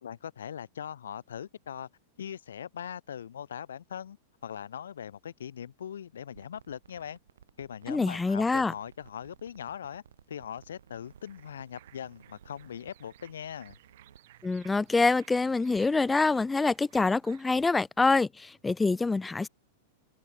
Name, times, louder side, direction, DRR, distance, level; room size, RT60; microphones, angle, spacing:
voice 1, 0.0-1.9 2.2-4.2 4.4-7.2 7.6-10.0 10.3-13.8, left 9 dB, 80° left, 1.5 m, -40 dB
sound 1, 6.3-14.9, right 8 dB, 80° right, 2.7 m, -58 dB
voice 2, 7.9-8.7 14.4-19.5, left 3 dB, 10° left, 0.3 m, -26 dB
sound 2, 11.0-17.4, right 16 dB, 65° right, 7.2 m, -59 dB
hypercardioid pair, 105°, 0 cm